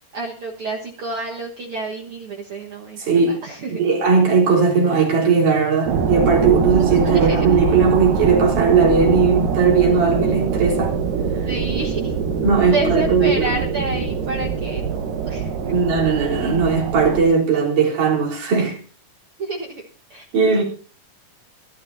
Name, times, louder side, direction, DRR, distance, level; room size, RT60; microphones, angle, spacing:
voice 1, 0.1-3.8 6.8-7.5 11.4-12.1 12.7-15.8 19.4-19.8 20.1-20.6, right 3 dB, 50° right, 2.0 m, -29 dB
voice 2, 3.0-3.4 3.7-11.0 12.4-13.6 15.7-18.8 20.3-20.6, right 5 dB, 70° right, 5.2 m, -18 dB
sound 1, 5.9-17.2, right 6 dB, 85° right, 3.0 m, -23 dB
25.0 x 12.5 x 2.7 m
omnidirectional pair, 3.8 m